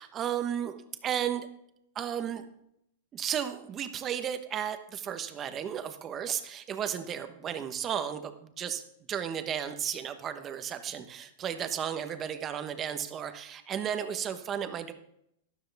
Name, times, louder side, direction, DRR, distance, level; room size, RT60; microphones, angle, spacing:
voice 1, 0.0-1.5 1.9-2.4 3.1-8.8 9.1-14.9, right 9 dB, 20° right, 9 dB, 1.1 m, -34 dB
13.0 x 12.5 x 3.5 m, 0.76 s
supercardioid pair, 155°, 0 cm